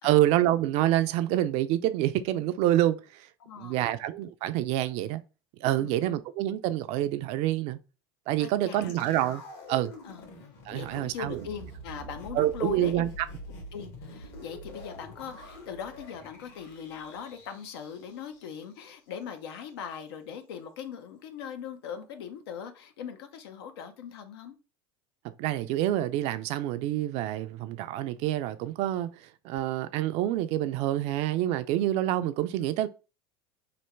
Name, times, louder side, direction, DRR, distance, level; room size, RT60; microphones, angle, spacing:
voice 1, 0.0-3.3 3.6-5.2 5.6-7.8 8.3-9.4 9.7-9.9 10.7-11.4 12.3-13.1 25.4-32.9, right 13 dB, 60° right, 0.4 m, -27 dB
voice 2, 3.4-4.0 5.8-6.1 8.4-8.9 10.1-10.3 10.7-13.0 13.7-24.6, left 7 dB, 85° left, 0.6 m, -40 dB
sound 1, 8.8-18.9 19.2-19.3, equal, 60° left, 1.4 m, -46 dB
3.3 x 2.4 x 3.1 m
supercardioid pair, 105°, 13 cm